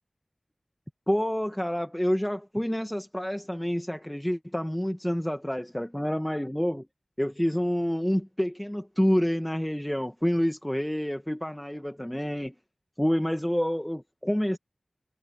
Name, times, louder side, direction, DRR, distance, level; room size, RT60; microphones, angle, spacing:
voice 1, 1.1-6.9 7.2-12.5 13.0-14.6, equal, 10° left, 1.4 m, -28 dB
wide cardioid pair, 55°, 0 cm